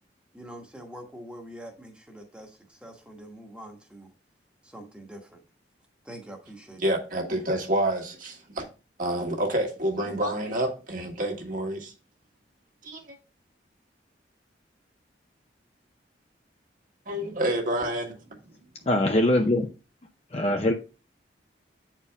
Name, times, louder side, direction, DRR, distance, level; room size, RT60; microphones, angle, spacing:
voice 1, 0.3-4.1 4.6-5.4 6.0-6.8, right 1 dB, 5° right, 1.2 m, -44 dB
voice 2, 6.8-8.6 9.0-11.9 12.8-13.0 17.1-18.2, right 1 dB, 45° right, 1.6 m, -28 dB
voice 3, 18.9-19.7 20.3-20.7, left 1 dB, 35° left, 0.6 m, -22 dB
8.4 x 4.5 x 3.4 m
head